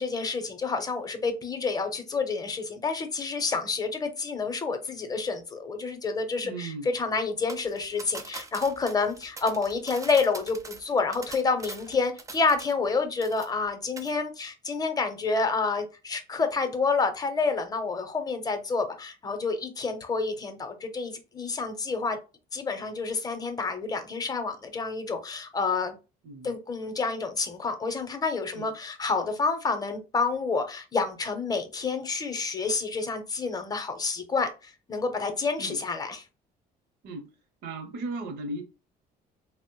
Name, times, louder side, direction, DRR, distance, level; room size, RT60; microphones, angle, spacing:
voice 1, 0.0-22.2 22.5-26.0 26.4-36.2, left 4 dB, 20° left, 0.6 m, -29 dB
voice 2, 6.4-6.9 26.2-26.6 28.5-28.7 35.6-35.8 37.0-37.3 37.6-38.6, right 2 dB, 75° right, 0.8 m, -36 dB
sound 1, 7.5-12.9 13.2-13.7 14.0-14.1, right 3 dB, 20° right, 0.4 m, -43 dB
3.0 x 2.0 x 2.9 m
cardioid pair, 110°, 17 cm